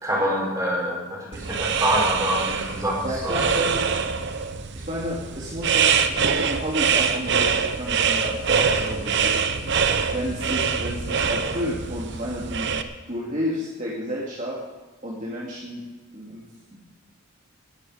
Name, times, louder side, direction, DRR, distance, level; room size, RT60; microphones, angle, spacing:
voice 1, 0.0-3.4, equal, 15° right, -2 dB, 4.3 m, -26 dB
sound 1, 1.3-12.8, right 6 dB, 55° right, 0.9 m, -24 dB
voice 2, 3.0-3.8 4.7-9.4 10.1-12.7 13.1-14.6 15.0-15.8 16.1-16.4 16.7-16.9, equal, 35° right, -5 dB, 2.5 m, -31 dB
20.5 x 10.5 x 5.1 m, 1.2 s
head